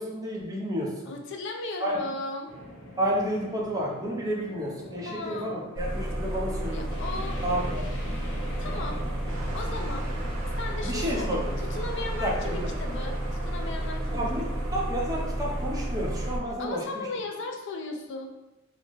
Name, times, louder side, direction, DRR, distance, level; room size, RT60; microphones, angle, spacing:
voice 1, 0.0-0.9 1.8-1.9 3.0-6.9 7.4-8.0 10.8-11.5 12.2-12.7 14.1-14.4 14.7-17.1, equal, 20° right, -3 dB, 0.6 m, -31 dB
voice 2, 1.1-2.5 5.0-5.5 6.7-7.4 8.6-9.0 9.5-10.1 10.6-14.7 16.6-18.3, left 3 dB, 60° left, 3 dB, 0.4 m, -36 dB
sound 1, 2.5-16.3, left 1 dB, 85° left, 0.8 m, -45 dB
sound 2, 5.7-16.4, right 1 dB, 60° right, 1.4 m, -31 dB
sound 3, 9.3-14.6, right 1 dB, 85° right, 0.6 m, -42 dB
3.9 x 2.0 x 3.1 m, 0.97 s
head